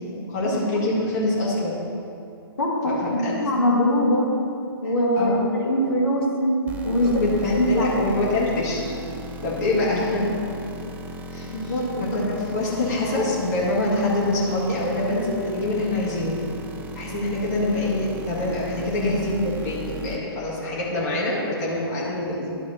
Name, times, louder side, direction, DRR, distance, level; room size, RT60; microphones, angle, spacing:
voice 1, 0.1-1.8 2.8-3.0 3.2-3.5 5.1-5.4 7.0-8.9 9.4-10.3 11.3-11.7 12.1-16.3 16.9-22.5, left 2 dB, 40° left, -7 dB, 2.1 m, -25 dB
voice 2, 2.6-4.3 4.8-7.2 7.5-8.1 11.5-11.9, equal, 65° left, -1 dB, 1.7 m, -22 dB
sound 1, 6.7-20.2, equal, 10° right, 0.4 m, -37 dB
11.5 x 4.1 x 5.6 m, 2.6 s
figure-of-eight pair, 125°, 13 cm